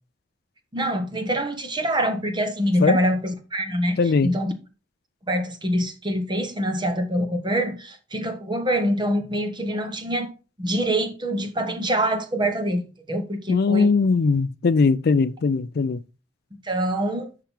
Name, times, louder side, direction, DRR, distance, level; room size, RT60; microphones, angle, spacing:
voice 1, 0.7-4.5 5.3-10.3 10.6-13.9 16.6-17.3, equal, 25° right, 1.2 m, -25 dB
voice 2, 4.0-4.3 13.5-16.0, left 4 dB, 55° left, 0.4 m, -20 dB
10.5 x 5.8 x 3.6 m
head